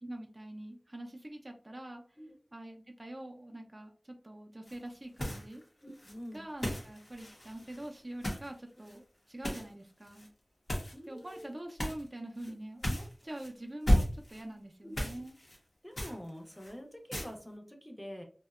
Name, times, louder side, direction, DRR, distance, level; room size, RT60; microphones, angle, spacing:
voice 1, 0.0-2.0 2.5-5.6 6.3-10.3 11.1-15.3, right 1 dB, 35° right, 2 dB, 0.4 m, -45 dB
sound 1, 4.7-4.9 5.1-5.6 5.9-8.5 8.8-9.0 9.4-9.7 10.0-10.3 10.7-11.4 11.8-12.1 12.4-12.5 12.8-13.5 13.9-14.4 14.9-15.6 16.0-16.7 17.1-17.3, equal, 75° left, 0.8 m, -34 dB
voice 2, 5.8-6.4 10.9-11.5 12.5-12.6 14.8-15.2 15.8-18.2, equal, 10° left, 2 dB, 0.6 m, -46 dB
2.7 x 2.1 x 2.3 m, 0.41 s
wide cardioid pair, 40°, 0 cm